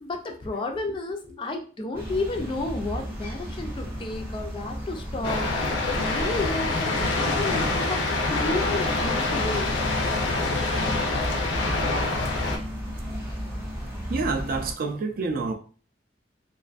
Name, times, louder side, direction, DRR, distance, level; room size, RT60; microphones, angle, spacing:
voice 1, 0.0-8.0 8.3-9.8, left 2 dB, 25° left, 0.3 m, -32 dB
sound 1, 1.9-14.7, equal, 15° right, 0.9 m, -34 dB
sound 2, 5.2-12.6, left 3 dB, 85° left, 0.5 m, -26 dB
voice 2, 14.1-15.5, right 3 dB, 50° right, 0.4 m, -28 dB
2.5 x 2.4 x 2.3 m
head